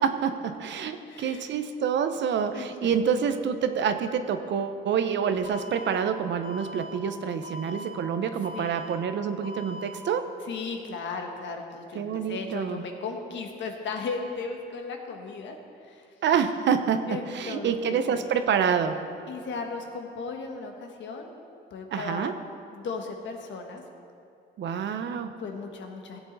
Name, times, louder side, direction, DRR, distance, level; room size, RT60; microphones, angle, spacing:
voice 1, 0.0-10.3 11.9-12.8 16.2-19.0 21.9-22.3 24.6-25.3, right 7 dB, 65° right, 9 dB, 0.8 m, -27 dB
voice 2, 1.0-1.5 2.5-3.0 8.5-8.8 10.4-16.1 17.1-18.2 19.3-21.3 21.7-22.3 22.7-23.8 25.4-26.2, left 4 dB, 70° left, 3 dB, 1.4 m, -36 dB
Alarm, 5.4-5.9 6.4-6.9 7.4-7.9 8.4-8.9 9.4-9.9, left 1 dB, 55° left, 2.4 m, -41 dB
16.0 x 8.1 x 4.0 m, 2.5 s
cardioid pair, 90°, 20 cm